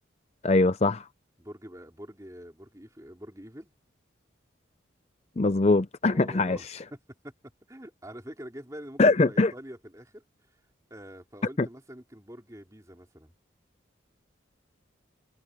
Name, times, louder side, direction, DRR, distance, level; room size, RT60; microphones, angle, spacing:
voice 1, 0.4-1.1 5.4-6.8 9.0-9.5 11.6-11.7, left 3 dB, 35° left, 0.5 m, -22 dB
voice 2, 1.4-3.7 6.0-7.0 7.2-7.3 7.7-10.2 10.9-13.3, equal, 15° right, 3.4 m, -45 dB
head